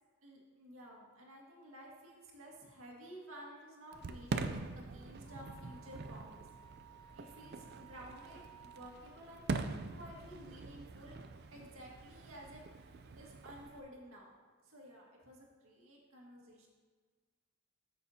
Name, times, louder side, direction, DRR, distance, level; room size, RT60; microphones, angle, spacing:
voice 1, 0.2-6.5 7.1-9.5 9.9-11.2 11.5-12.6 13.2-14.3 14.6-16.7, equal, 80° right, -2 dB, 1.9 m, -53 dB
Fireworks, 3.9-13.8, right 3 dB, 50° right, 0.4 m, -44 dB
Wind instrument woodwind instrument, 5.2-9.1, right 7 dB, 40° left, 1.4 m, -58 dB
13.5 x 6.7 x 2.8 m, 1.5 s
head